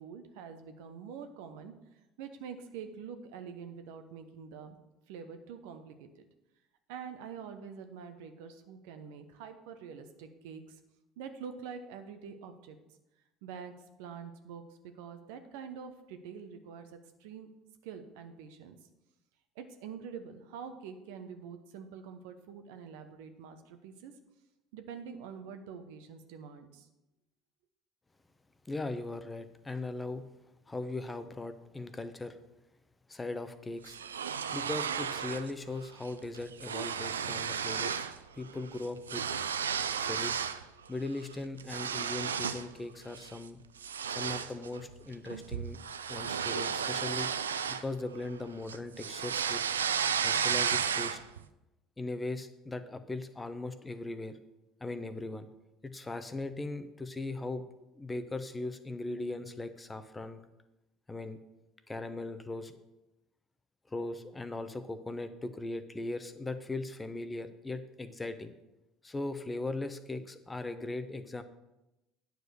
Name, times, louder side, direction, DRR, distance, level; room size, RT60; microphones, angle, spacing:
voice 1, 0.0-1.7 2.2-4.8 5.1-6.2 6.9-10.8 11.2-12.8 13.4-13.7 14.0-17.5 17.8-18.8 19.6-24.1 24.7-26.9, right 6 dB, 70° right, 8 dB, 0.9 m, -46 dB
voice 2, 28.6-30.3 30.7-32.4 33.1-34.0 34.5-38.1 38.3-39.2 40.0-40.5 40.9-43.6 44.1-45.8 46.1-47.3 47.7-49.6 50.2-51.2 52.0-54.4 54.8-55.5 55.8-60.4 61.1-61.4 61.9-62.8 63.9-68.5 69.0-71.4, left 2 dB, 20° left, 10 dB, 0.9 m, -39 dB
sound 1, 33.8-35.5 35.8-36.1 36.3-38.2 38.5-40.6 41.1-42.7 43.1-43.4 43.8-48.3 48.7-51.4, right 7 dB, 90° right, 0.3 m, -33 dB
9.3 x 4.9 x 6.4 m, 0.94 s
hypercardioid pair, 65°, 0 cm